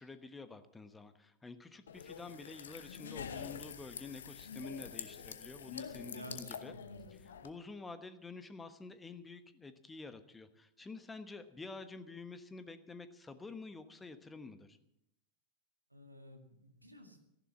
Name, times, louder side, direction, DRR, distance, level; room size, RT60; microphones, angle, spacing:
voice 1, 0.0-6.7 7.4-14.8, left 3 dB, 10° left, 11 dB, 1.2 m, -49 dB
sound 1, 1.9-7.5, left 7 dB, 65° left, 1.0 m, -46 dB
voice 2, 6.1-7.1 15.9-17.2, right 1 dB, 85° right, 5 dB, 2.1 m, -52 dB
14.0 x 11.0 x 7.5 m, 0.81 s
figure-of-eight pair, 90°, 0 cm